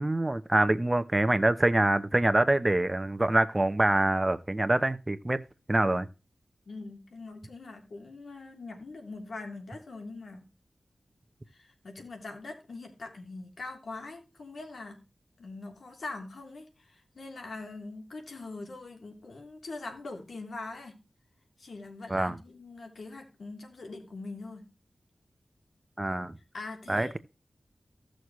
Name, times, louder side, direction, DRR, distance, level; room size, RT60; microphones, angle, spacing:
voice 1, 0.0-5.4 5.7-6.1 22.1-22.4 26.0-26.4 26.9-27.2, right 1 dB, 25° right, 0.8 m, -25 dB
voice 2, 6.7-10.5 11.5-15.0 15.4-21.0 21.6-24.7 26.5-27.2, left 3 dB, 80° left, 3.3 m, -42 dB
16.0 x 6.5 x 3.1 m
cardioid pair, 55°, 0 cm